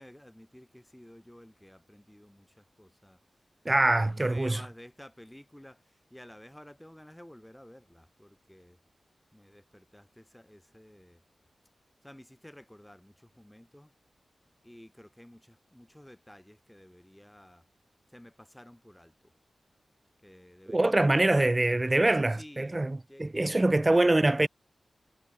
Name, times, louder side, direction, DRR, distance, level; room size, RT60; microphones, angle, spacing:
voice 1, 0.0-3.2 3.9-8.8 9.3-11.2 12.0-13.9 14.6-17.6 18.1-19.3 20.2-21.6 22.3-22.8 23.1-24.4, left 1 dB, 10° left, 1.9 m, -52 dB
voice 2, 3.7-4.6 20.7-24.5, right 2 dB, 30° right, 0.6 m, -24 dB
cardioid pair, 40°, 0 cm